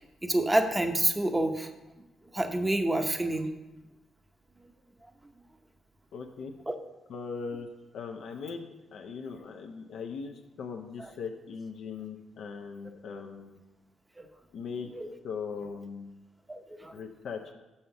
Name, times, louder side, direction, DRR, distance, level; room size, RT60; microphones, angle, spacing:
voice 1, 0.2-1.7 2.3-3.5 15.0-15.1 16.5-16.9, right 1 dB, 15° right, 6 dB, 0.8 m, -27 dB
voice 2, 6.1-6.5 7.1-7.7 7.9-13.6 14.5-14.9 15.2-16.1 16.9-17.4, left 5 dB, 70° left, 2 dB, 0.6 m, -39 dB
6.5 x 5.6 x 5.7 m, 1.0 s
cardioid pair, 90°, 0 cm